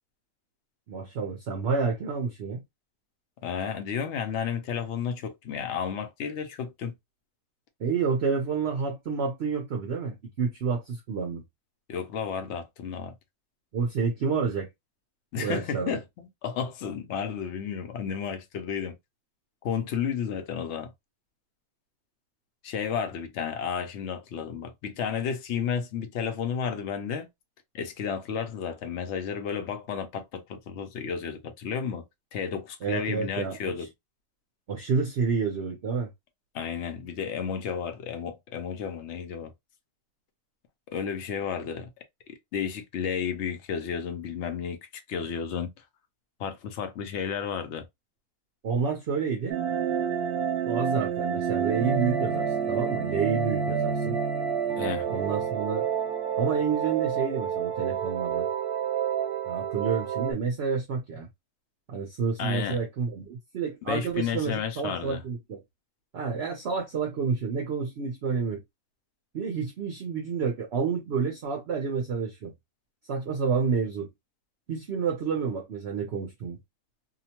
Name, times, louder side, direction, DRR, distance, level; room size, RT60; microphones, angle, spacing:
voice 1, 0.9-2.6 7.8-11.4 13.7-14.7 15.4-16.0 32.8-33.7 34.7-36.1 48.6-49.6 50.7-54.2 55.1-55.8 56.4-58.5 59.4-61.3 61.9-65.6 66.1-68.6 69.3-72.5 73.1-74.1 74.7-76.6, right 5 dB, 55° right, 0.8 m, -29 dB
voice 2, 3.4-6.9 11.9-13.1 15.3-19.0 19.6-20.9 22.6-27.3 27.7-32.0 32.3-33.9 36.5-39.5 40.9-41.9 42.5-44.8 45.1-45.7 46.4-47.8 54.8-55.1 62.4-62.8 63.9-65.2, left 7 dB, 65° left, 0.7 m, -32 dB
sound 1, 49.5-60.3, right 7 dB, 80° right, 1.1 m, -28 dB
2.8 x 2.1 x 2.8 m
omnidirectional pair, 1.7 m